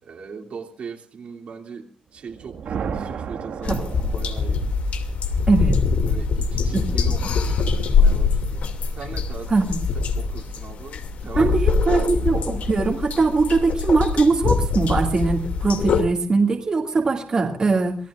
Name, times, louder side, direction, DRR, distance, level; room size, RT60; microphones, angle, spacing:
voice 1, 0.0-4.7 6.1-8.7 8.9-9.5 9.9-11.6 12.1-12.3, right 5 dB, 55° right, 3.2 m, -39 dB
sound 1, 2.2-4.8, right 6 dB, 85° right, 2.0 m, -33 dB
sound 2, 3.6-16.0, left 5 dB, 70° left, 2.6 m, -23 dB
voice 2, 5.5-5.8 6.7-6.9 9.5-9.8 11.4-18.0, right 3 dB, 30° right, 2.5 m, -21 dB
26.5 x 18.5 x 2.6 m
wide cardioid pair, 170°, 2 cm